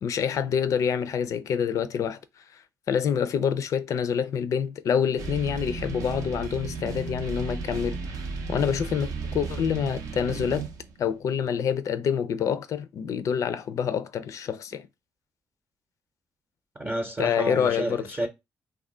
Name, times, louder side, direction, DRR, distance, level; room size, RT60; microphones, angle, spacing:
voice 1, 0.0-2.2 2.9-8.0 8.5-10.7 11.0-14.9 17.2-18.1, left 7 dB, 65° left, 0.4 m, -27 dB
sound 1, 5.2-11.1, right 4 dB, 80° right, 0.5 m, -34 dB
voice 2, 16.8-18.3, right 1 dB, 30° right, 0.6 m, -30 dB
2.4 x 2.1 x 3.6 m
cardioid pair, 75°, 6 cm